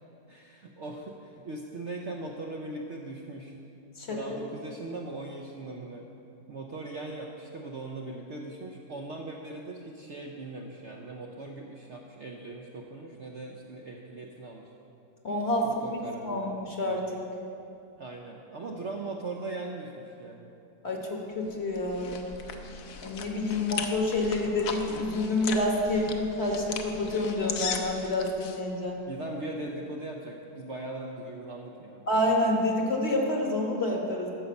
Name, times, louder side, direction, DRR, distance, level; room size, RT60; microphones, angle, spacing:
voice 1, 0.3-3.5 4.1-6.0 6.5-14.7 15.6-16.5 18.0-20.5 29.1-32.1, right 2 dB, 60° right, 0 dB, 0.8 m, -39 dB
voice 2, 15.2-16.0 16.2-17.2 20.8-22.3 23.0-29.0 32.1-34.3, left 1 dB, 45° left, 0 dB, 1.3 m, -28 dB
sound 1, 21.5-28.6, left 6 dB, 65° left, 1.0 m, -38 dB
12.0 x 5.2 x 7.0 m, 2.7 s
omnidirectional pair, 1.8 m